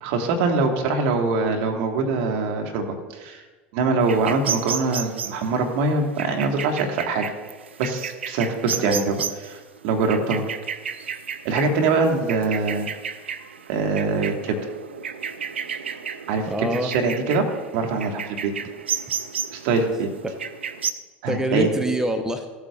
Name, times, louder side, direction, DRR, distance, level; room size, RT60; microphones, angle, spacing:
voice 1, 0.0-3.4 3.7-7.3 7.8-9.2 9.8-10.4 11.4-12.9 13.7-14.6 16.3-16.4 16.8-17.4 17.7-18.5 19.5-20.1 21.2-21.7, right 3 dB, 65° right, 3 dB, 1.6 m, -23 dB
sound 1, 4.0-20.9, right 7 dB, 90° right, 0.4 m, -33 dB
voice 2, 8.6-9.3 16.5-17.0 20.2-20.3 21.3-22.5, equal, 10° right, 8 dB, 0.8 m, -26 dB
15.0 x 8.5 x 2.4 m, 1.3 s
hypercardioid pair, 85°, 6 cm